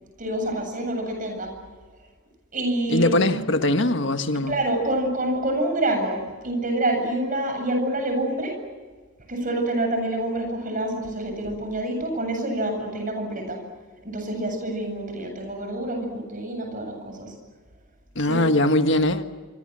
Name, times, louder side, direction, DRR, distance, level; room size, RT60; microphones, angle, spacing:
voice 1, 0.2-1.5 2.5-3.4 4.5-8.6 9.3-13.6 14.0-17.3 18.2-18.4, right 1 dB, 40° right, 7.8 m, -27 dB
voice 2, 2.9-4.5 18.1-19.2, left 1 dB, 60° left, 1.6 m, -21 dB
26.0 x 25.5 x 7.6 m
head